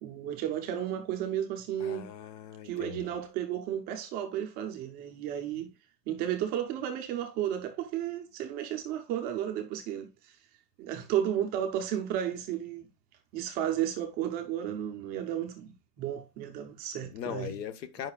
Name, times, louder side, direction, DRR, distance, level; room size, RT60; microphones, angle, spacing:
voice 1, 0.0-2.1 2.6-5.7 6.1-10.4 10.8-12.9 13.3-17.6, right 10 dB, 20° right, 0.5 m, -33 dB
voice 2, 1.8-3.1 17.0-18.1, left 9 dB, 85° left, 1.1 m, -39 dB
9.1 x 5.6 x 2.3 m
supercardioid pair, 165°, 48 cm